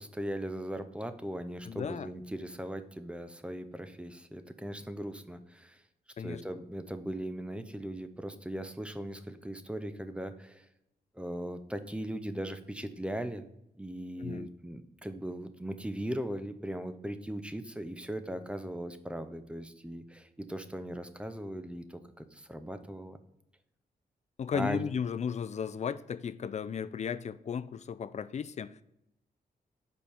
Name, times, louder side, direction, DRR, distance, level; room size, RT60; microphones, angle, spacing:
voice 1, 0.0-5.8 6.2-10.7 11.1-13.5 13.8-23.2 24.5-24.9, right 1 dB, 5° right, 0.6 m, -39 dB
voice 2, 1.6-2.1 6.2-6.4 14.2-14.5 24.4-28.8, left 7 dB, 45° left, 0.4 m, -35 dB
5.1 x 4.4 x 4.7 m
cardioid pair, 75°, 16 cm